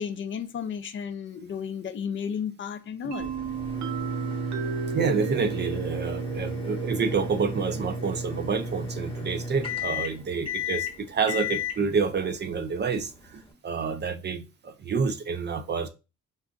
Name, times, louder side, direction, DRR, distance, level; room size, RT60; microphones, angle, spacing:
voice 1, 0.0-3.3, left 7 dB, 40° left, 0.4 m, -33 dB
sound 1, 3.1-10.8, right 7 dB, 70° right, 0.7 m, -36 dB
sound 2, 3.2-13.5, left 2 dB, 20° left, 1.0 m, -34 dB
voice 2, 4.9-15.9, right 5 dB, 35° right, 0.4 m, -28 dB
3.8 x 2.3 x 2.4 m
cardioid pair, 90°, 30 cm